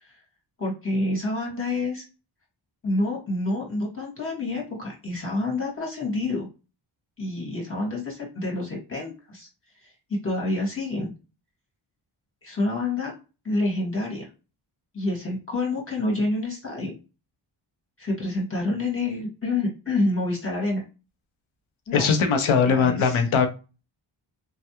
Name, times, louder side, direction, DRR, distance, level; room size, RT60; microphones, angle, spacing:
voice 1, 0.6-2.0 2.8-6.5 7.2-9.5 10.2-11.1 12.4-13.1 13.4-14.3 14.9-16.9 18.0-20.8 21.9-22.1 22.6-23.2, left 2 dB, 25° left, -1 dB, 1.8 m, -28 dB
voice 2, 21.9-23.5, left 5 dB, 75° left, 7 dB, 0.8 m, -20 dB
3.3 x 2.2 x 2.9 m, 0.31 s
cardioid pair, 70°, 48 cm